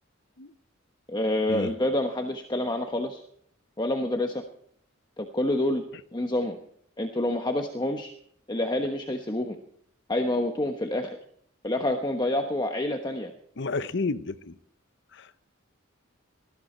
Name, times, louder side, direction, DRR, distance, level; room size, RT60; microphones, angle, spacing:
voice 1, 1.1-3.2 3.8-4.4 5.2-5.8 6.1-6.6 7.0-8.1 8.5-9.6 10.1-11.2 11.6-13.3, left 1 dB, 20° left, 1.1 m, -27 dB
voice 2, 13.6-14.6 15.1-15.4, left 3 dB, 60° left, 0.8 m, -31 dB
20.0 x 14.5 x 4.4 m
head